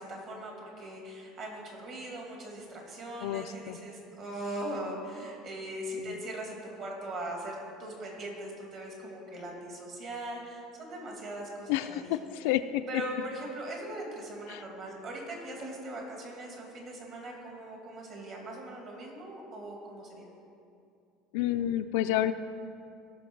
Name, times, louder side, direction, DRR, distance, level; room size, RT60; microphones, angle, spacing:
voice 1, 0.0-12.1 12.9-20.3, right 1 dB, 40° right, -1 dB, 2.4 m, -40 dB
voice 2, 3.2-3.8 6.0-6.2 11.7-13.0 14.5-14.6 21.3-22.3, left 13 dB, 80° left, 9 dB, 0.4 m, -30 dB
17.0 x 6.4 x 4.6 m, 2.5 s
cardioid pair, 160°, 0 cm